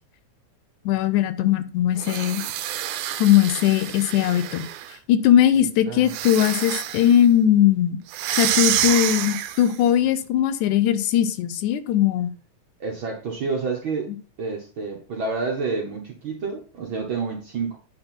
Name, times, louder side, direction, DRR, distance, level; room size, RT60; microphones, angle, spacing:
voice 1, 0.9-2.4 3.2-4.6 5.1-8.0 8.3-12.3, left 11 dB, 80° left, 2.1 m, -19 dB
sound 1, 2.0-5.0 6.0-7.2 8.1-9.8, right 12 dB, 85° right, 2.1 m, -27 dB
voice 2, 12.8-14.1 14.4-17.8, right 4 dB, 60° right, 1.3 m, -29 dB
8.8 x 4.3 x 4.4 m
omnidirectional pair, 3.6 m